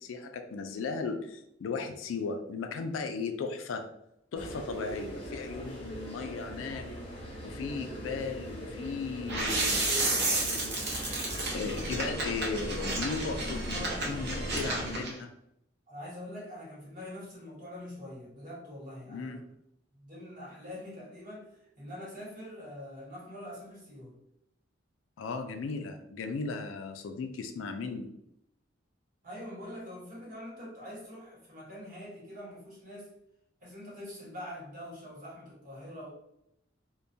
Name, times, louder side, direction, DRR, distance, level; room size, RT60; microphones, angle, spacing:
voice 1, 0.0-3.8 4.3-6.8 7.4-10.8 11.5-15.3 19.1-19.4 25.2-28.1, left 4 dB, 80° left, 6 dB, 0.3 m, -36 dB
sound 1, 4.3-15.0, equal, 25° left, 0.6 m, -41 dB
sound 2, 9.3-15.1, right 2 dB, 60° right, 0.6 m, -32 dB
voice 2, 13.7-14.7 15.9-19.4 19.9-24.2 29.2-33.1 33.6-36.1, left 1 dB, 45° right, -5 dB, 1.0 m, -44 dB
2.2 x 2.1 x 2.6 m, 0.78 s
head